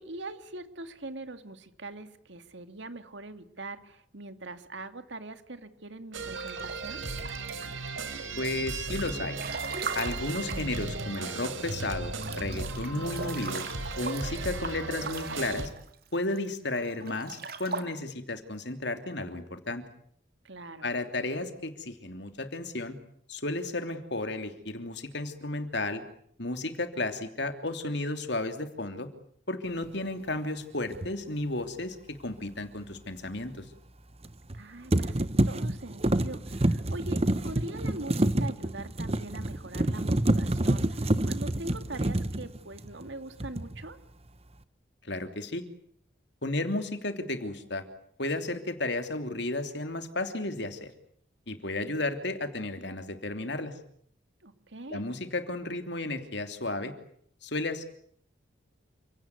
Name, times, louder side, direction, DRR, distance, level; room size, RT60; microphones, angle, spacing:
voice 1, 0.0-7.1 20.4-20.9 34.5-44.0 54.4-55.0, right 2 dB, 65° right, 9 dB, 2.4 m, -42 dB
sound 1, 6.1-15.7, right 3 dB, 85° right, 3.7 m, -36 dB
Breathing / Bathtub (filling or washing) / Splash splatter, 6.3-7.9 8.4-11.6 11.8-11.9 12.2-16.4 16.9-17.8, right 4 dB, 50° right, 2.2 m, -40 dB
voice 2, 8.4-9.4 9.9-13.6 14.0-15.7 16.1-19.8 20.8-23.0 23.3-26.0 26.4-29.1 29.5-33.6 45.0-45.6 46.4-47.8 48.2-50.9 51.5-53.7 54.9-56.9 57.4-57.9, left 2 dB, 60° left, 8 dB, 3.1 m, -33 dB
sound 2, 30.9-31.1 34.2-34.6 34.9-43.1 43.4-43.8, right 1 dB, 30° right, 1.1 m, -28 dB
29.5 x 17.5 x 9.7 m, 0.66 s
head